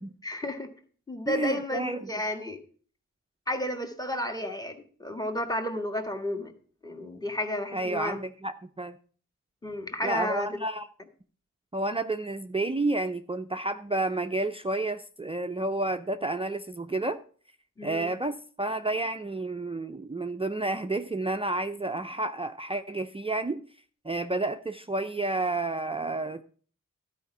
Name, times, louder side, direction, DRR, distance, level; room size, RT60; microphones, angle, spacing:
voice 1, 0.2-0.7 1.1-2.6 3.5-6.5 6.8-8.2 9.6-10.5 17.8-18.1, left 1 dB, 10° left, 4 dB, 1.6 m, -32 dB
voice 2, 1.3-2.2 7.7-9.0 10.0-10.9 11.7-17.2 17.8-23.6 24.0-26.4, right 2 dB, 20° right, 7 dB, 0.5 m, -30 dB
12.5 x 5.0 x 5.8 m, 0.43 s
wide cardioid pair, 75°, 32 cm